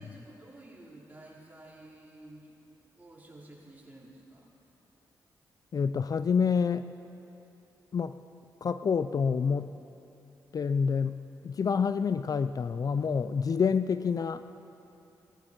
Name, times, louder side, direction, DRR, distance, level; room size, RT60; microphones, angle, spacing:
voice 1, 0.0-2.5 3.0-4.5, right 1 dB, 20° right, -4 dB, 4.2 m, -51 dB
voice 2, 5.7-6.8 7.9-8.2 8.6-9.7 10.5-11.2 11.4-14.4, left 6 dB, 50° left, 12 dB, 0.4 m, -27 dB
19.5 x 13.5 x 4.6 m, 2.9 s
cardioid pair, 55°, 8 cm